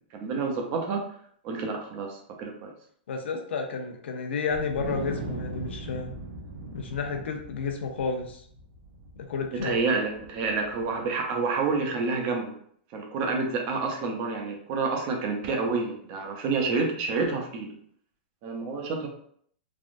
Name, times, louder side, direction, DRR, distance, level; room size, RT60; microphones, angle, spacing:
voice 1, 0.2-1.0 1.4-2.7 9.5-12.6 12.9-17.7 18.4-19.1, right 4 dB, 35° right, 1 dB, 0.6 m, -28 dB
voice 2, 3.1-6.1 6.7-8.4 9.3-9.7, left 5 dB, 80° left, 4 dB, 0.6 m, -31 dB
Wind, 4.5-11.0, right 2 dB, 90° right, 0.8 m, -39 dB
3.4 x 2.4 x 2.5 m, 0.62 s
hypercardioid pair, 160°, 6 cm